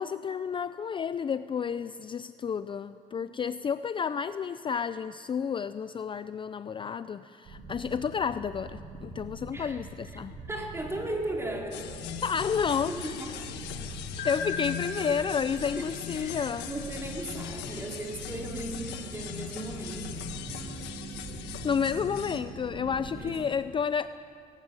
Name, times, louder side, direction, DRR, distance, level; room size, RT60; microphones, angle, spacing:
voice 1, 0.0-10.4 12.2-13.1 14.2-16.7 21.6-24.1, left 7 dB, 30° left, 13 dB, 0.5 m, -31 dB
voice 2, 3.2-3.6 9.5-9.8 10.5-11.9 12.9-13.5 15.1-15.2 15.8-20.3 23.1-23.4, right 1 dB, 15° right, 0 dB, 4.1 m, -37 dB
sound 1, 7.4-23.3, right 4 dB, 60° right, 3.0 m, -43 dB
sound 2, 11.7-22.4, left 9 dB, 90° left, 1.7 m, -40 dB
sound 3, 14.2-17.1, left 4 dB, 70° left, 5.4 m, -39 dB
19.5 x 15.0 x 9.7 m, 2.4 s
cardioid pair, 110°, 17 cm